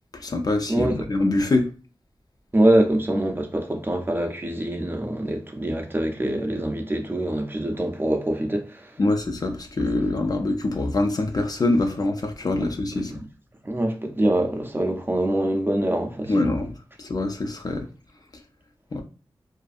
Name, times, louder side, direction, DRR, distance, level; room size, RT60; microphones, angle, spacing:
voice 1, 0.1-1.7 9.0-13.1 16.3-16.7 17.0-17.9 18.9-19.0, left 2 dB, 45° left, 0.4 m, -24 dB
voice 2, 0.7-1.0 2.5-8.9 12.9-13.3 13.6-16.6, right 1 dB, 25° right, 0.4 m, -24 dB
2.5 x 2.4 x 2.4 m
wide cardioid pair, 85°, 9 cm